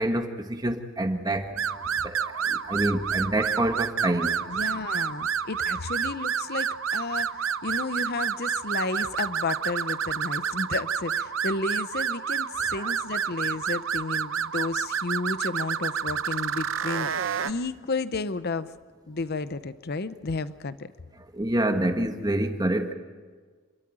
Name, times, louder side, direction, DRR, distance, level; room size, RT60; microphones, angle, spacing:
voice 1, 0.0-1.6 2.0-4.3 12.7-12.9 21.3-22.9, right 1 dB, 20° right, 6 dB, 1.4 m, -27 dB
sound 1, 1.6-17.5, right 7 dB, 75° right, 0.7 m, -29 dB
voice 2, 4.5-18.7 19.1-20.9, left 3 dB, 50° left, 13 dB, 0.7 m, -32 dB
27.5 x 13.5 x 8.8 m, 1.5 s
head